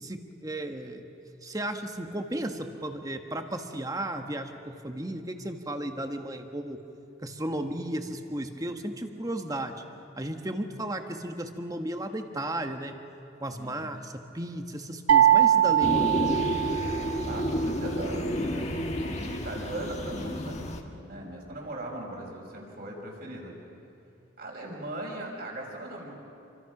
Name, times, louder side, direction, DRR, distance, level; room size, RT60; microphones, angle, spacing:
voice 1, 0.0-1.0 1.4-6.8 7.2-9.8 10.2-12.9 13.4-16.2, right 1 dB, 20° right, 6 dB, 1.3 m, -34 dB
sound 1, 15.1-17.2, right 11 dB, 80° right, 0.7 m, -22 dB
sound 2, 15.8-20.8, left 1 dB, 35° left, 1.6 m, -30 dB
voice 2, 17.2-23.5 24.4-26.1, right 1 dB, 50° right, -1 dB, 5.4 m, -39 dB
28.5 x 24.5 x 6.0 m, 2.9 s
head